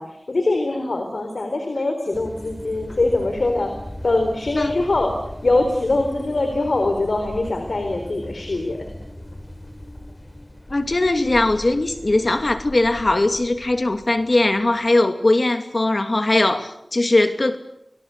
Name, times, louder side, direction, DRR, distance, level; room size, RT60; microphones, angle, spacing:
voice 1, 0.0-8.9, left 2 dB, 90° left, 5 dB, 4.0 m, -23 dB
sound 1, 2.1-15.0, left 1 dB, 40° left, 6.8 m, -38 dB
voice 2, 10.7-17.6, left 2 dB, 60° left, 8 dB, 2.6 m, -20 dB
29.0 x 21.5 x 8.3 m, 0.79 s
wide cardioid pair, 40°, 0 cm